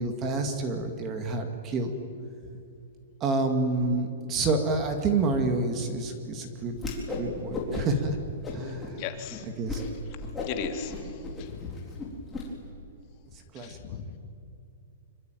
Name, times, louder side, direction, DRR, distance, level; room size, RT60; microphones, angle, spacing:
voice 1, 0.0-1.9 3.2-6.8 7.2-8.2 8.5-9.0 9.6-9.8 13.5-14.0, right 3 dB, 20° right, 6 dB, 2.2 m, -28 dB
Whoosh swoosh swish, 6.7-7.3 7.5-8.0 8.4-8.9 9.3-9.4 9.7-9.9 10.2-12.4, left 3 dB, 10° left, 4.1 m, -35 dB
voice 2, 9.0-9.4 10.5-11.8 13.6-14.2, left 9 dB, 30° left, 5 dB, 2.3 m, -38 dB
26.0 x 25.0 x 9.3 m, 2.5 s
hypercardioid pair, 170°, 0 cm